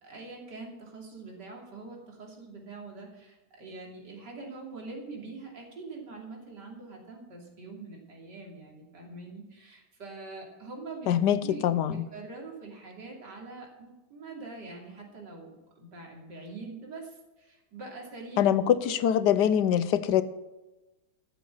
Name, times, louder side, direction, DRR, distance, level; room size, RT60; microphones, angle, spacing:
voice 1, 0.0-19.5, right 3 dB, 85° right, 3.5 m, -44 dB
voice 2, 11.1-12.0 18.4-20.2, left 10 dB, 85° left, 1.3 m, -24 dB
13.5 x 7.5 x 7.5 m
omnidirectional pair, 1.8 m